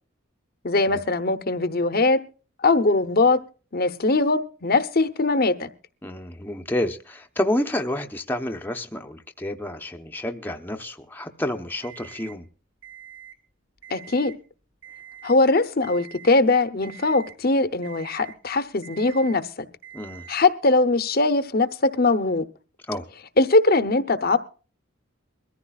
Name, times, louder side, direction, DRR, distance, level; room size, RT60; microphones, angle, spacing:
voice 1, 0.6-2.2 2.6-3.4 3.7-5.7 13.9-14.3 15.2-19.7 20.3-22.4 23.4-24.4, left 3 dB, 50° left, 12 dB, 0.8 m, -21 dB
voice 2, 6.0-12.5 19.9-20.3 22.9-23.1, left 1 dB, 10° left, 4 dB, 0.8 m, -29 dB
Alarm, 11.8-12.4 12.8-13.4 13.8-14.4 14.8-15.4 15.8-16.4 16.8-17.4 17.8-18.4 18.8-19.4 19.8-20.4, right 9 dB, 75° right, 2.9 m, -45 dB
22.0 x 14.0 x 2.4 m, 0.37 s
head